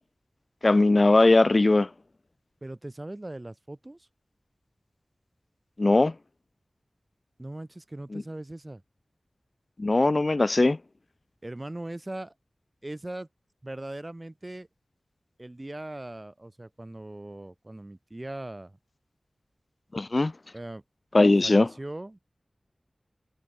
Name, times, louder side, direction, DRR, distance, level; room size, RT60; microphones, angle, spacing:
voice 1, 0.6-1.9 5.8-6.1 8.1-8.2 9.8-10.8 19.9-20.3 21.1-21.7, left 2 dB, 45° left, 0.4 m, -20 dB
voice 2, 2.6-4.1 7.4-8.8 11.4-12.3 12.8-13.3 13.6-14.7 15.4-18.8 20.5-20.8 21.4-22.2, right 1 dB, 30° right, 3.8 m, -39 dB
wide cardioid pair, 60°, 0 cm